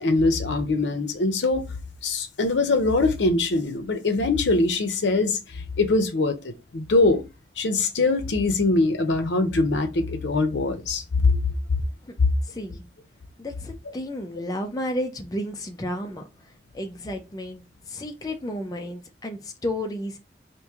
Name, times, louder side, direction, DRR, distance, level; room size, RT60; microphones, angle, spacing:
voice 1, 0.0-1.6 2.0-7.2 7.6-11.5, left 3 dB, 80° left, 0.6 m, -23 dB
voice 2, 12.4-12.8 13.4-16.2 16.7-17.6 17.9-20.2, left 1 dB, 20° left, 0.5 m, -32 dB
3.0 x 2.6 x 3.6 m
head